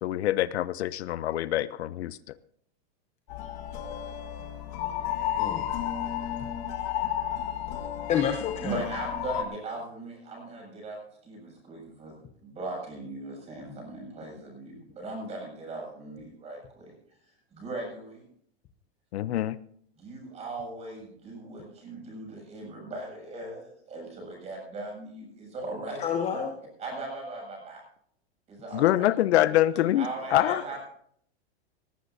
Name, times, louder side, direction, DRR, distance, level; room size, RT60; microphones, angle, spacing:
voice 1, 0.0-2.2 19.1-19.6 28.7-30.6, left 13 dB, 80° left, 17 dB, 0.7 m, -25 dB
sound 1, 3.3-9.4, left 10 dB, 45° left, 1.7 m, -32 dB
voice 2, 5.4-5.7 8.1-8.8 26.0-26.5 30.7-30.8, left 8 dB, 20° left, 5 dB, 0.9 m, -29 dB
voice 3, 8.6-12.1 12.4-16.9 17.5-18.3 20.0-26.0 26.3-26.4 26.8-27.8 28.5-29.1 29.4-30.8, right 2 dB, 20° right, 0 dB, 6.9 m, -38 dB
18.5 x 15.0 x 2.7 m, 0.65 s
supercardioid pair, 160°, 32 cm